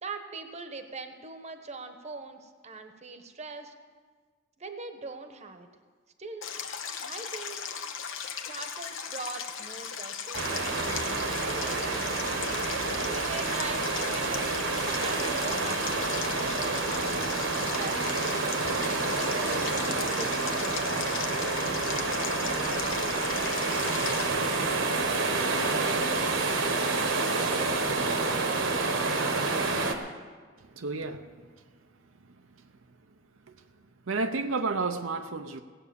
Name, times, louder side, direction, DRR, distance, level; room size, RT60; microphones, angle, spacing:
voice 1, 0.0-3.7 4.6-5.7 6.2-6.4 7.0-7.6 8.5-11.0 11.4-12.4 12.9-14.5 15.0-16.1 16.4-17.1 17.7-20.6, right 3 dB, 35° right, 7 dB, 1.0 m, -41 dB
Stream, 6.4-24.3, left 7 dB, 80° left, 1.0 m, -37 dB
sound 1, 10.3-30.0, right 3 dB, 70° right, 1.3 m, -28 dB
voice 2, 30.8-31.4 33.5-33.6 34.1-35.6, right 3 dB, 85° right, 7 dB, 0.7 m, -31 dB
16.5 x 8.3 x 6.9 m, 1.5 s
head